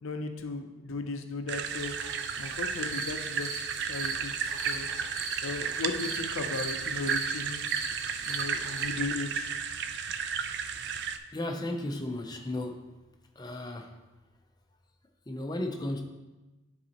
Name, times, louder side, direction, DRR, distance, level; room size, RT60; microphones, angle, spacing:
voice 1, 0.0-2.1 2.4-4.9 5.4-7.6 8.3-9.5, left 3 dB, 85° left, 6 dB, 0.5 m, -36 dB
sound 1, 1.5-11.2, right 6 dB, 55° right, 0.3 m, -33 dB
sound 2, 1.7-8.8, right 3 dB, 85° right, 1.0 m, -41 dB
voice 2, 11.3-12.8 13.4-13.9 15.3-16.0, left 1 dB, 20° left, 4 dB, 0.5 m, -34 dB
10.5 x 4.1 x 2.9 m, 1.1 s
head